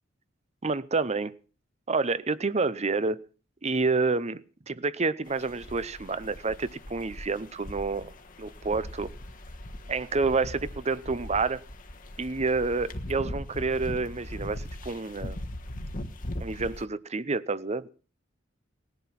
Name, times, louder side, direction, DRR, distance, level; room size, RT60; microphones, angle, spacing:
voice 1, 0.6-1.4 1.9-3.3 3.6-8.1 8.4-9.1 9.9-11.6 12.2-15.4 16.4-17.9, right 3 dB, 35° right, 17 dB, 0.7 m, -29 dB
sound 1, 5.3-16.9, left 1 dB, 45° left, 1.4 m, -40 dB
19.0 x 11.0 x 5.9 m, 0.39 s
head